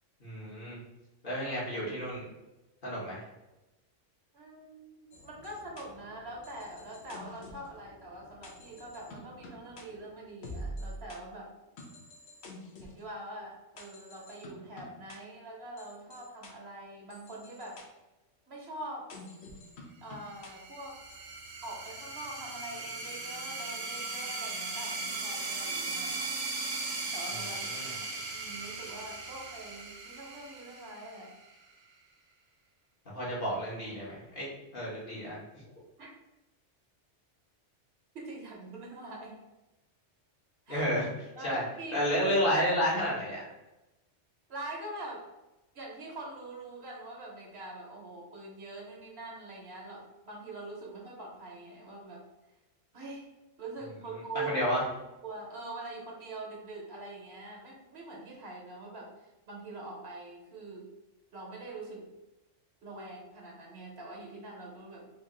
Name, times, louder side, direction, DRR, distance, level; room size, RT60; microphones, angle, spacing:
voice 1, 0.2-0.8 1.2-2.3 2.8-3.2 27.6-27.9 33.1-34.5 34.7-35.4 40.7-41.6 41.9-43.4 54.3-54.8, equal, 45° left, -7 dB, 1.3 m, -31 dB
voice 2, 4.3-11.5 12.8-17.8 18.5-19.1 20.0-21.0 21.6-26.2 27.1-27.6 28.3-31.3 36.0-36.1 38.1-39.3 40.7-40.8 41.4-42.1 44.5-45.2 45.7-52.2 52.9-53.3 53.6-54.6 55.2-60.9 61.3-62.1 62.8-65.1, right 2 dB, 60° right, -1 dB, 1.1 m, -44 dB
sound 1, 5.1-11.2 11.8-13.0 13.8-15.2 15.8-16.5 17.1-17.8 19.1-20.5 21.1-21.3, equal, 65° left, 0.9 m, -47 dB
sound 2, 20.3-31.5, right 3 dB, 75° right, 1.1 m, -38 dB
3.3 x 2.5 x 3.7 m, 1.0 s
omnidirectional pair, 1.3 m